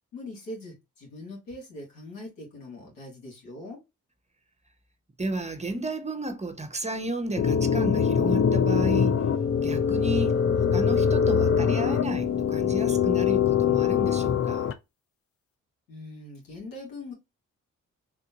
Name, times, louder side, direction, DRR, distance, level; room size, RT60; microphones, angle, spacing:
voice 1, 0.1-3.8 15.9-17.1, left 2 dB, 90° left, 2.1 m, -41 dB
voice 2, 5.2-9.3 9.6-14.7, right 2 dB, 20° right, 0.8 m, -33 dB
sound 1, 7.4-14.7, left 7 dB, 45° left, 0.6 m, -23 dB
3.6 x 2.5 x 2.8 m
supercardioid pair, 50°, 32 cm